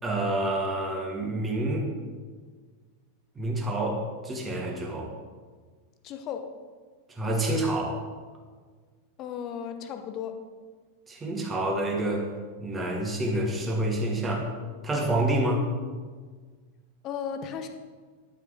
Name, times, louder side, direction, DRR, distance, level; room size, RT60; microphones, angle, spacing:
voice 1, 0.0-1.9 3.4-5.1 7.1-8.0 11.1-12.3 12.6-14.5 14.8-15.6, right 1 dB, 15° right, -1 dB, 2.2 m, -28 dB
voice 2, 6.0-6.4 9.2-10.3 17.0-17.7, left 8 dB, 35° left, 7 dB, 0.9 m, -35 dB
11.0 x 5.7 x 5.0 m, 1.5 s
figure-of-eight pair, 90°, 0 cm